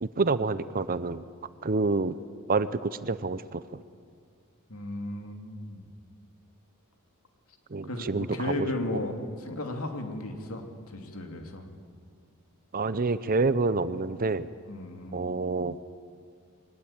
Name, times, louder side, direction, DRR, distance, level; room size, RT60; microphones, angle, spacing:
voice 1, 0.0-1.2 1.6-2.2 2.5-3.8 7.7-8.7 12.7-14.5 15.1-15.8, right 3 dB, 40° right, 15 dB, 0.7 m, -28 dB
voice 2, 4.7-5.9 7.9-11.6 14.7-15.2, left 1 dB, 75° left, 4 dB, 2.8 m, -35 dB
22.0 x 18.5 x 8.9 m, 2.1 s
head